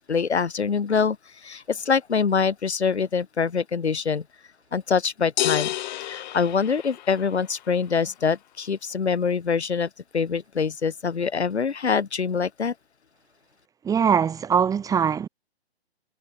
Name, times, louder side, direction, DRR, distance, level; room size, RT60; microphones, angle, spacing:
voice 1, 0.1-1.2 1.4-4.2 4.7-5.7 6.0-12.7, left 6 dB, 80° left, 4.9 m, -24 dB
sound 1, 5.4-7.4, left 14 dB, 40° left, 5.5 m, -29 dB
voice 2, 13.8-15.3, right 7 dB, 10° right, 2.1 m, -22 dB
hypercardioid pair, 145°, 33 cm